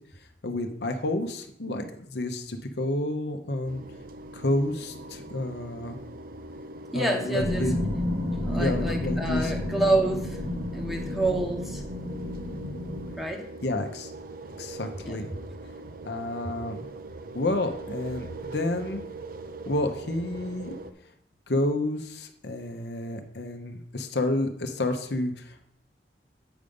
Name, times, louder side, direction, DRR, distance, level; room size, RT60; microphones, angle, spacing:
voice 1, 0.4-3.8 4.3-6.0 6.9-7.8 8.6-9.5 13.6-14.1 14.6-15.3 16.0-16.9 17.3-19.0 19.7-20.7 21.5-25.7, left 1 dB, 65° left, 6 dB, 0.9 m, -30 dB
sound 1, 3.7-20.9, right 2 dB, 55° right, 0.5 m, -42 dB
voice 2, 6.9-7.7 8.4-10.4 10.7-11.8 13.2-13.5 15.0-15.2, right 2 dB, ahead, 1 dB, 0.9 m, -28 dB
sound 2, 7.3-13.1, left 1 dB, 90° right, 2.1 m, -31 dB
8.1 x 5.2 x 5.3 m, 0.71 s
head